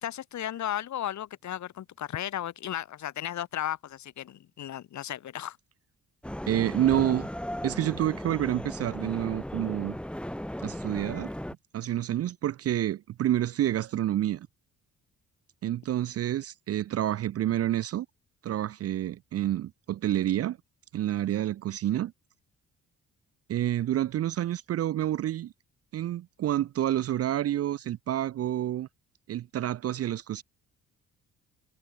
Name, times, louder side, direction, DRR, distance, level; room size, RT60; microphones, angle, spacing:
voice 1, 0.0-5.6, left 11 dB, 70° left, 3.1 m, -35 dB
sound 1, 6.2-11.5, equal, 5° left, 4.5 m, -36 dB
voice 2, 6.5-7.3 7.6-10.0 10.6-11.3 11.7-14.5 15.6-18.1 18.4-20.6 20.9-22.1 23.5-25.5 25.9-28.9 29.3-30.4, right 12 dB, 55° right, 0.5 m, -28 dB
cardioid pair, 90°, 30 cm